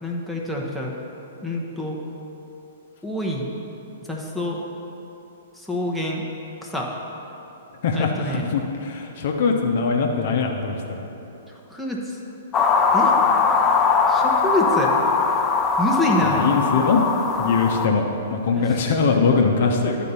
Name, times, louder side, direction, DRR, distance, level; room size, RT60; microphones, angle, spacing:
voice 1, 0.0-0.9 1.4-2.0 3.0-3.5 4.1-4.6 5.6-6.2 6.6-6.9 7.9-8.5 11.5-12.2 12.9-13.1 14.1-14.9 15.8-16.6 18.5-18.9, left 1 dB, ahead, -2 dB, 1.0 m, -26 dB
voice 2, 7.8-10.8 16.2-17.1 17.4-20.0, left 5 dB, 55° left, 2 dB, 0.8 m, -21 dB
sound 1, 12.5-17.9, left 5 dB, 25° left, 0.5 m, -20 dB
11.0 x 4.1 x 5.5 m, 3.0 s
figure-of-eight pair, 110°, 0 cm